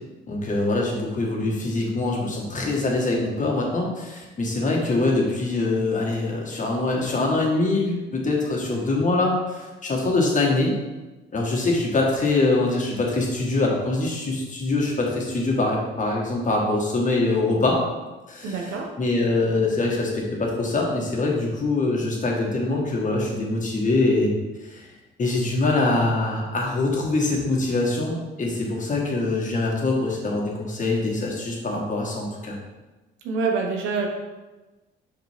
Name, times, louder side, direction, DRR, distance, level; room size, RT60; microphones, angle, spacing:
voice 1, 0.3-10.7 11.3-17.8 18.3-24.3 24.7-24.8 25.2-32.6, left 2 dB, 40° left, -1 dB, 1.6 m, -24 dB
voice 2, 18.4-18.9 33.2-34.1, right 4 dB, 90° right, 1 dB, 1.1 m, -26 dB
5.2 x 5.1 x 3.6 m, 1.2 s
cardioid pair, 90°, 20 cm